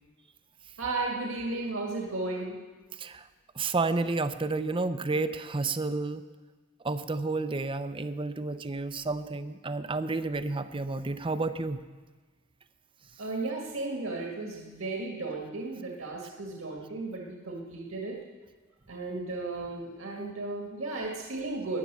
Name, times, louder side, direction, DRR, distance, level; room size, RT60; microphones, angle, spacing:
voice 1, 0.8-2.6 13.2-18.2 18.9-21.8, right 3 dB, 75° right, 0 dB, 1.9 m, -34 dB
voice 2, 3.6-6.2 6.8-11.8, right 3 dB, 25° right, 11 dB, 0.6 m, -31 dB
15.5 x 10.0 x 6.8 m, 1.3 s
head